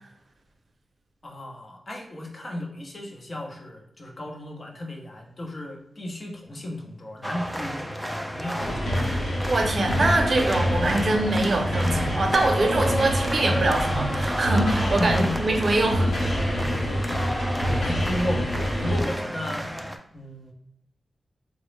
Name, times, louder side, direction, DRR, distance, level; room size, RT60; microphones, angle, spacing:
voice 1, 1.2-9.2 15.0-15.3 17.1-18.4 18.8-19.7 20.1-20.5, left 1 dB, 40° left, 1 dB, 0.7 m, -34 dB
sound 1, 7.2-20.0, equal, ahead, 0.3 m, -31 dB
sound 2, 8.6-19.0, equal, 85° left, 0.9 m, -27 dB
voice 2, 9.5-16.1, right 2 dB, 55° right, 3 dB, 0.6 m, -24 dB
3.8 x 2.0 x 3.1 m, 0.77 s
cardioid pair, 75°, 0 cm